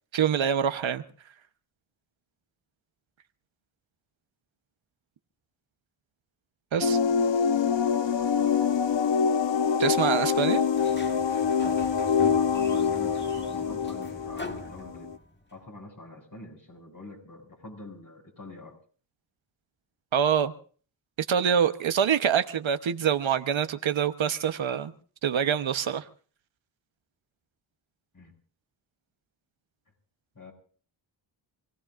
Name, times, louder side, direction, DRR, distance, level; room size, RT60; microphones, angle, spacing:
voice 1, 0.1-1.0 6.7-7.0 9.8-10.6 20.1-20.5 21.3-24.9 25.2-26.0, right 8 dB, 70° right, 1.1 m, -25 dB
sound 1, 6.8-15.2, left 6 dB, 60° left, 1.0 m, -25 dB
Sliding door, 10.7-15.4, left 1 dB, 20° left, 1.9 m, -42 dB
voice 2, 12.4-15.1 15.5-18.8 28.1-28.3 30.4-30.5, left 2 dB, 40° left, 7.1 m, -45 dB
28.0 x 16.5 x 2.5 m
cardioid pair, 60°, 49 cm